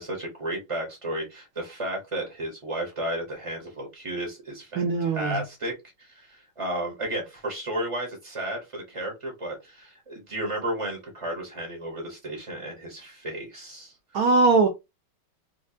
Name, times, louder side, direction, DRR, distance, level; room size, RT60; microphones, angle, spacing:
voice 1, 0.0-5.7 6.0-13.9, right 1 dB, 35° right, 0.5 m, -33 dB
voice 2, 4.7-5.4 14.1-14.7, right 3 dB, 75° right, 0.8 m, -21 dB
4.3 x 2.4 x 2.7 m
omnidirectional pair, 2.3 m